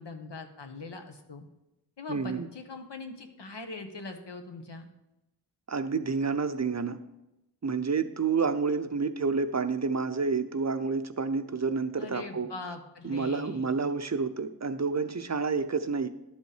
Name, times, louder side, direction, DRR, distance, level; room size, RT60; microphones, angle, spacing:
voice 1, 0.0-1.4 2.0-4.9 12.0-13.9, left 3 dB, 80° left, 5 dB, 1.0 m, -42 dB
voice 2, 2.1-2.5 5.7-7.0 7.6-12.5 13.0-16.1, right 4 dB, 40° right, 10 dB, 0.6 m, -29 dB
11.5 x 5.3 x 4.9 m, 0.94 s
wide cardioid pair, 40°, 41 cm